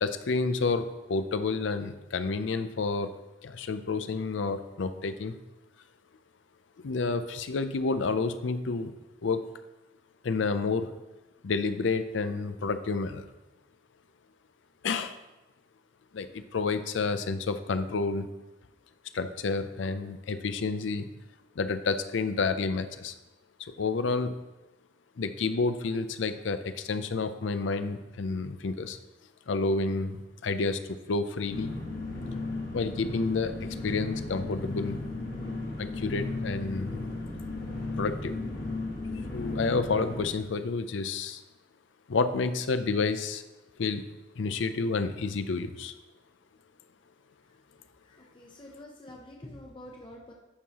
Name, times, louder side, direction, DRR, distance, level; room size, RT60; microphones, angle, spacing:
voice 1, 0.0-3.1 3.4-5.3 6.8-8.9 9.2-9.4 10.2-10.9 11.4-13.2 14.8-15.2 16.1-18.3 19.1-21.1 21.6-23.1 23.8-24.3 25.2-29.0 29.5-31.7 32.7-35.1 35.8-37.0 37.9-38.4 39.2-41.4 42.1-43.4 43.8-44.0 44.4-45.9, left 4 dB, 85° left, 11 dB, 0.5 m, -30 dB
sound 1, 31.5-40.2, left 2 dB, 50° left, 1.4 m, -35 dB
voice 2, 48.0-50.3, left 1 dB, 25° left, -2 dB, 0.7 m, -47 dB
11.0 x 5.5 x 2.9 m, 1.1 s
head